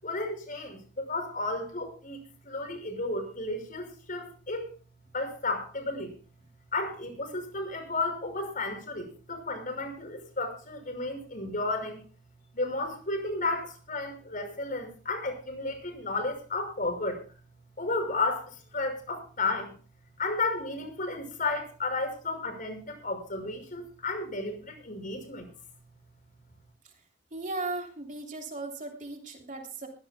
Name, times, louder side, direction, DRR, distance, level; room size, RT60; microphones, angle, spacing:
voice 1, 0.0-4.7 5.1-6.1 6.7-12.0 12.5-17.2 17.8-19.7 20.2-25.5, left 2 dB, 45° left, 5 dB, 6.0 m, -33 dB
voice 2, 27.3-29.9, right 2 dB, 45° right, 2 dB, 3.3 m, -37 dB
23.0 x 16.0 x 2.3 m, 0.37 s
head